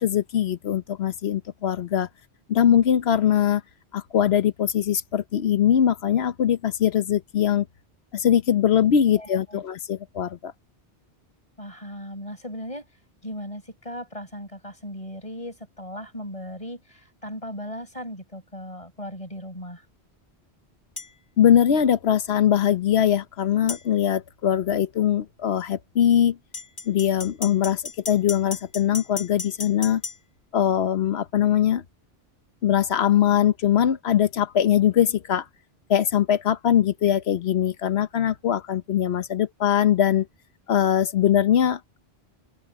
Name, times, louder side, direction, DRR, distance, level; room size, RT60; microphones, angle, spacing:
voice 1, 0.0-2.1 2.5-3.6 3.9-7.7 8.1-10.5 21.4-26.4 26.8-30.0 30.5-31.8 32.6-35.5 35.9-40.3 40.7-42.0, left 10 dB, 75° left, 1.1 m, -21 dB
voice 2, 9.1-9.6 11.6-12.8 13.2-19.8, equal, 30° left, 7.8 m, -37 dB
sound 1, 21.0-21.1 23.7-23.8 26.5-30.2, left 3 dB, 50° left, 2.2 m, -34 dB
open air
omnidirectional pair, 1.1 m